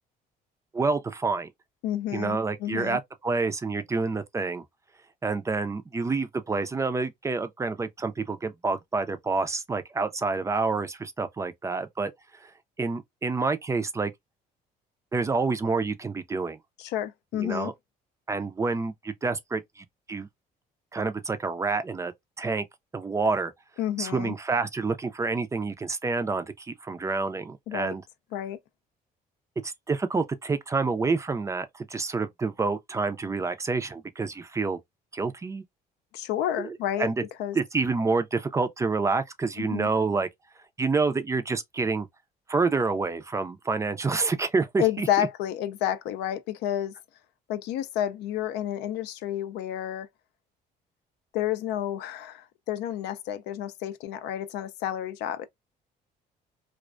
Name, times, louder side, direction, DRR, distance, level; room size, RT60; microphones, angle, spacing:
voice 1, 0.7-1.5 2.1-4.6 5.2-12.1 12.4-12.5 12.8-14.1 15.1-16.6 17.3-17.7 18.3-20.3 20.9-22.7 22.9-23.5 24.0-28.0 29.6-34.8 35.1-35.6 36.6-37.2 37.5-40.3 40.8-42.1 42.5-45.3, right 4 dB, 20° right, 0.3 m, -28 dB
voice 2, 1.8-3.0 16.8-17.7 23.8-24.3 27.7-27.9 28.3-28.6 36.1-37.1 37.4-37.6 39.6-39.9 44.8-46.9 47.5-50.1 51.3-55.5, left 11 dB, 85° left, 0.4 m, -30 dB
2.4 x 2.1 x 2.4 m
cardioid pair, 110°, 17 cm